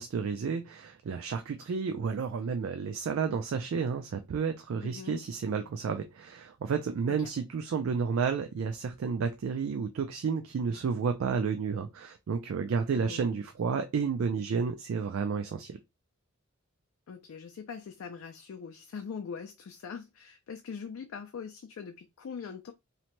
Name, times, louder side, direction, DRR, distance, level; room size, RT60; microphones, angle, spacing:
voice 1, 0.0-15.8, right 5 dB, 75° right, 0.3 m, -31 dB
voice 2, 4.8-5.2 7.1-7.3 12.9-13.3 17.1-22.7, left 6 dB, 75° left, 0.3 m, -42 dB
2.7 x 2.1 x 2.9 m
head